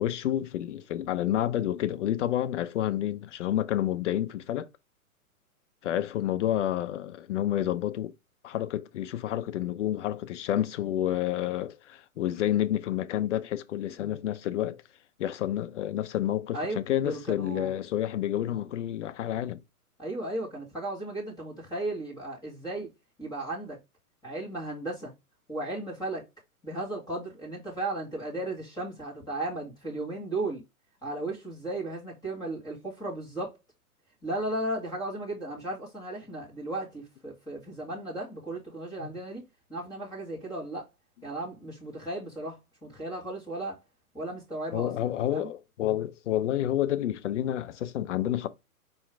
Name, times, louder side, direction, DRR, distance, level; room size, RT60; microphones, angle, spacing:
voice 1, 0.0-4.7 5.8-8.1 8.4-14.8 15.2-19.6 39.0-39.2 44.7-48.5, left 12 dB, 55° left, 0.7 m, -29 dB
voice 2, 17.0-17.7 20.0-22.9 23.2-23.8 24.2-25.1 25.5-26.2 26.6-30.6 31.0-33.6 34.2-40.9 41.2-43.8 44.1-45.5, right 2 dB, 10° left, 1.8 m, -35 dB
4.7 x 3.1 x 3.3 m
hypercardioid pair, 130°, 45 cm